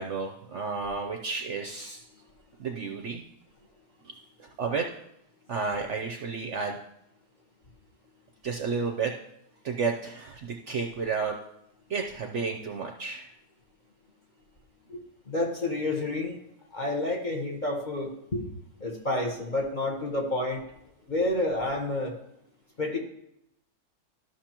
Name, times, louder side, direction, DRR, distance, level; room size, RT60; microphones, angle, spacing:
voice 1, 0.0-2.0 2.6-3.2 4.4-4.9 5.5-6.8 8.4-9.1 9.6-11.4 11.9-13.3, right 5 dB, 60° right, 3 dB, 0.8 m, -31 dB
voice 2, 15.3-16.4 16.7-18.4 18.8-20.6 21.1-22.1 22.8-23.0, left 2 dB, 30° left, 0 dB, 1.1 m, -29 dB
13.0 x 6.0 x 2.9 m, 0.79 s
omnidirectional pair, 1.8 m